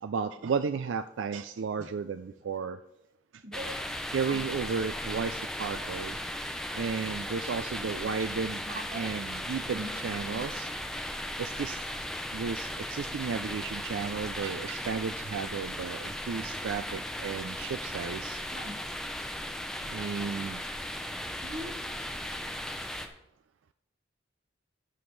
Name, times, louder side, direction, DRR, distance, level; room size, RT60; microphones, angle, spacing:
voice 1, 0.0-2.8 3.3-3.4 4.1-6.2 6.7-8.7 8.9-10.7 11.4-11.9 12.3-18.4 19.9-20.6, right 5 dB, 75° right, 10 dB, 0.4 m, -33 dB
sound 1, 3.5-23.1, left 1 dB, 5° left, 0.6 m, -37 dB
voice 2, 8.7-9.1 9.8-9.9 10.3-10.4 18.5-18.7 21.4-21.7, right 1 dB, 45° right, 4 dB, 1.3 m, -40 dB
17.0 x 7.0 x 3.2 m, 0.87 s
head